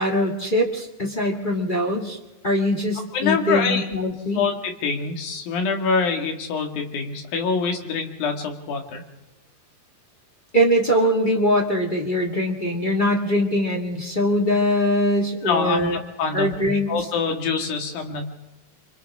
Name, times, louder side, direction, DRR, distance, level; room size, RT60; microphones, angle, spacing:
voice 1, 0.0-2.2 2.4-4.4 10.5-16.0 16.3-16.9, equal, 20° left, 0 dB, 1.5 m, -22 dB
voice 2, 3.1-3.8 4.4-9.0 15.4-16.5 16.9-18.3, left 5 dB, 85° left, 3 dB, 3.9 m, -25 dB
29.5 x 25.5 x 3.7 m, 1.0 s
omnidirectional pair, 4.0 m